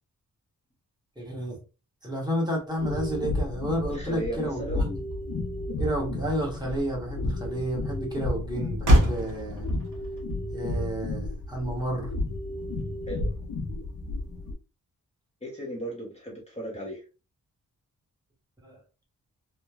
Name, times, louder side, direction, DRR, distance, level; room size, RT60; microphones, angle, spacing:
voice 1, 1.2-1.6 2.0-5.0 5.8-9.7 10.5-12.1 18.6-18.8, right 1 dB, 10° right, -3 dB, 1.0 m, -31 dB
sound 1, 2.8-14.5, left 2 dB, 75° left, 0.9 m, -32 dB
voice 2, 3.9-4.8 13.1-13.2 15.4-17.0, equal, 20° left, -4 dB, 0.7 m, -35 dB
Motor vehicle (road), 5.0-13.4, equal, 60° right, 0.8 m, -30 dB
3.0 x 2.1 x 2.3 m, 0.30 s
wide cardioid pair, 145°, 35 cm